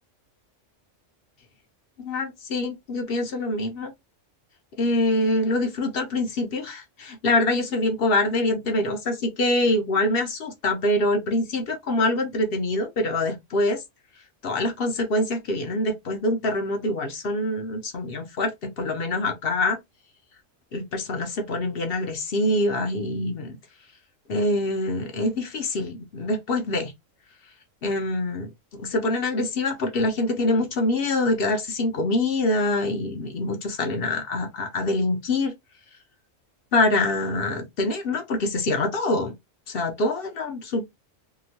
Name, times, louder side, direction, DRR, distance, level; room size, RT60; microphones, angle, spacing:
voice 1, 2.0-3.9 4.8-13.8 14.4-18.5 18.8-19.8 20.7-23.6 24.3-26.9 27.8-35.5 36.7-39.3 39.7-40.8, left 2 dB, 60° left, 0.7 m, -25 dB
2.9 x 2.1 x 2.7 m
omnidirectional pair, 1.3 m